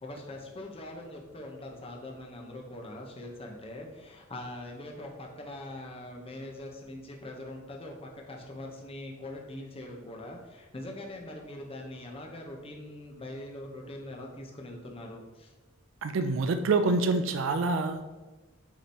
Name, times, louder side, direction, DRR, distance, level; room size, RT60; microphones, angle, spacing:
voice 1, 0.0-15.5 16.8-16.9, left 1 dB, 30° left, 1 dB, 0.9 m, -42 dB
voice 2, 16.0-18.1, right 3 dB, 70° right, 9 dB, 0.4 m, -26 dB
8.3 x 3.0 x 4.3 m, 1.2 s
head